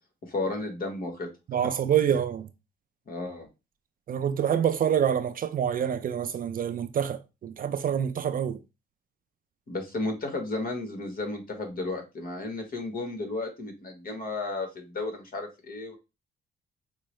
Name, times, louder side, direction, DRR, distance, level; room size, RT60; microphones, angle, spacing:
voice 1, 0.2-1.3 3.1-3.5 9.7-16.0, left 2 dB, 50° left, 1.2 m, -33 dB
voice 2, 1.5-2.5 4.1-8.6, right 9 dB, 45° right, 0.4 m, -26 dB
4.5 x 2.0 x 3.1 m
cardioid pair, 90°, 20 cm